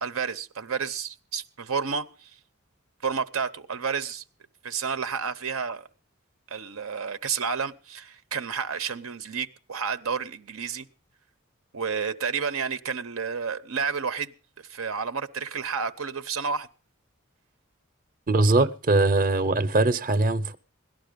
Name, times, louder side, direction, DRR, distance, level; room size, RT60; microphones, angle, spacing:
voice 1, 0.0-2.3 3.0-4.2 4.6-5.9 6.5-10.9 11.7-16.7 18.6-18.7, right 6 dB, 85° right, 0.8 m, -31 dB
voice 2, 18.3-20.5, right 2 dB, 40° right, 0.7 m, -21 dB
18.0 x 12.0 x 5.2 m
head